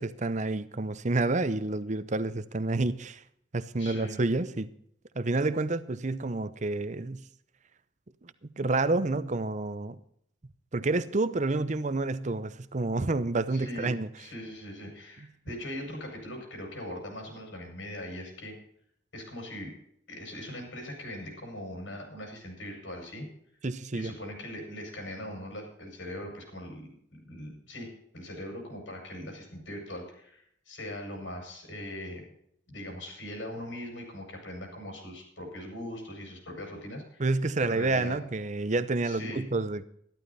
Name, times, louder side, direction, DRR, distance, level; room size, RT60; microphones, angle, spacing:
voice 1, 0.0-3.2 3.5-4.7 5.1-7.2 8.2-10.0 10.7-14.1 23.6-24.1 37.2-39.8, right 2 dB, 40° right, 0.7 m, -29 dB
voice 2, 3.8-4.2 13.5-18.5 19.1-19.7 20.1-23.3 23.9-26.9 27.2-32.2 32.7-37.2 37.6-38.2 39.1-39.5, left 1 dB, 90° left, 6.1 m, -40 dB
13.5 x 12.5 x 4.1 m
head